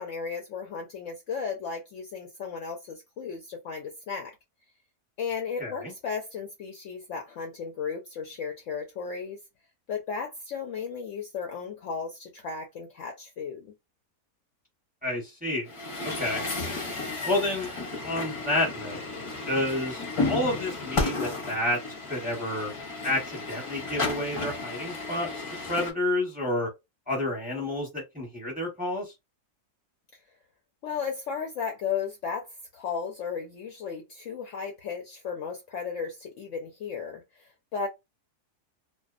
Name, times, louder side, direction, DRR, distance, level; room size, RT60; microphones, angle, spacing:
voice 1, 0.0-4.3 5.2-9.4 9.9-13.7 30.8-32.5 32.7-37.9, left 6 dB, 70° left, 0.8 m, -35 dB
voice 2, 5.6-5.9 15.0-15.7 16.2-16.4 17.2-17.7 18.0-19.0 19.5-21.8 22.1-22.7 23.0-25.3 25.7-26.7 27.1-29.0, left 1 dB, 5° right, 0.8 m, -29 dB
Truck, 15.7-25.9, left 3 dB, 30° left, 0.6 m, -33 dB
2.6 x 2.1 x 2.4 m
omnidirectional pair, 1.6 m